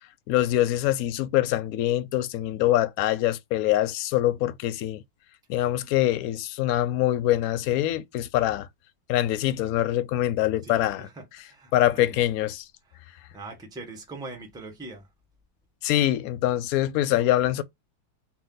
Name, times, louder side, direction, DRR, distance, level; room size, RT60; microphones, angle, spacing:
voice 1, 0.3-5.0 5.5-8.7 9.1-11.1 11.7-12.6 15.8-17.6, left 13 dB, 80° left, 0.7 m, -24 dB
voice 2, 10.6-12.2 12.9-13.0 13.3-15.1, right 3 dB, 5° right, 1.0 m, -42 dB
4.3 x 2.6 x 3.8 m
omnidirectional pair, 2.1 m